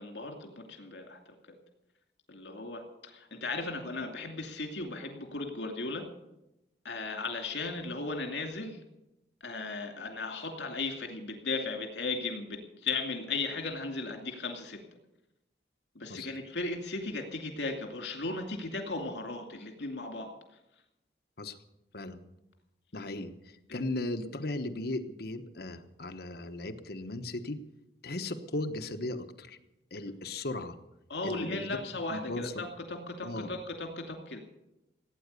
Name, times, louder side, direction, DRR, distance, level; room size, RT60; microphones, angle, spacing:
voice 1, 0.0-1.3 2.3-6.1 6.8-8.8 9.4-14.8 15.9-20.3 23.7-23.8 31.1-34.4, left 3 dB, 75° left, 3 dB, 2.6 m, -36 dB
voice 2, 22.9-27.6 28.0-29.6 29.9-30.8 31.2-31.8 32.1-32.6 33.2-33.5, left 2 dB, 60° left, 8 dB, 1.1 m, -37 dB
17.5 x 9.2 x 8.2 m, 0.91 s
head